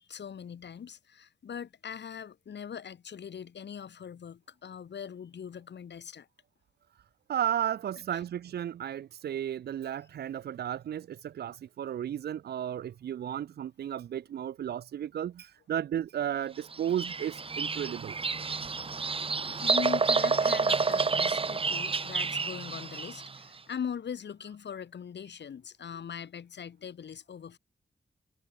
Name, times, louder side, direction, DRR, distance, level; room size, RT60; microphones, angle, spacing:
voice 1, 0.0-6.3 8.1-8.2 19.6-27.6, left 7 dB, 90° left, 2.9 m, -41 dB
voice 2, 7.3-18.2, right 10 dB, 70° right, 0.4 m, -34 dB
Bird vocalization bird call bird song, 16.7-23.4, right 4 dB, 30° right, 0.9 m, -29 dB
wide cardioid pair, 150°, 17 cm